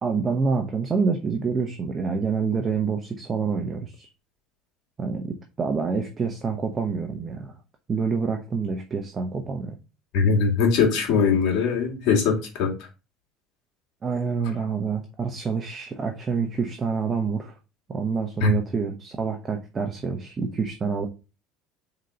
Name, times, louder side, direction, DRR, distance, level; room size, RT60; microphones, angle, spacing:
voice 1, 0.0-4.1 5.0-7.6 7.9-9.7 14.0-17.5 17.9-21.1, right 5 dB, 25° right, 0.9 m, -27 dB
voice 2, 10.1-12.7 18.4-18.5, left 5 dB, 65° left, 2.1 m, -21 dB
4.5 x 4.0 x 5.7 m
cardioid pair, 125°, 0 cm